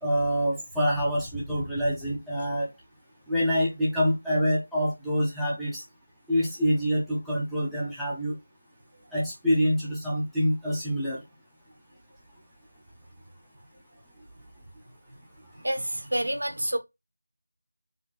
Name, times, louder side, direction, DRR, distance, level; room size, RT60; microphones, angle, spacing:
voice 1, 0.0-2.7 3.3-5.8 6.3-8.3 9.1-11.2, equal, ahead, 1.0 m, -26 dB
voice 2, 15.5-16.8, right 1 dB, 80° right, 1.1 m, -28 dB
4.2 x 3.5 x 3.3 m
figure-of-eight pair, 170°, 0 cm